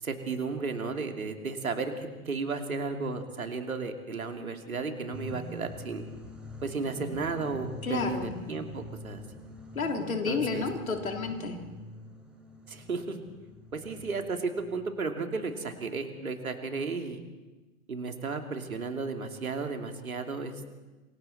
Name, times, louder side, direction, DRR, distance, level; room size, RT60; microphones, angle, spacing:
voice 1, 0.0-6.0 6.6-9.2 10.3-10.6 12.7-13.2 13.7-17.2 17.9-20.8, right 4 dB, 75° right, 5 dB, 2.8 m, -34 dB
sound 1, 5.1-16.1, left 1 dB, ahead, 4.5 m, -46 dB
voice 2, 7.8-8.3 9.8-11.6, left 4 dB, 75° left, 3 dB, 3.5 m, -30 dB
27.0 x 23.5 x 4.3 m, 1.2 s
figure-of-eight pair, 115°, 42 cm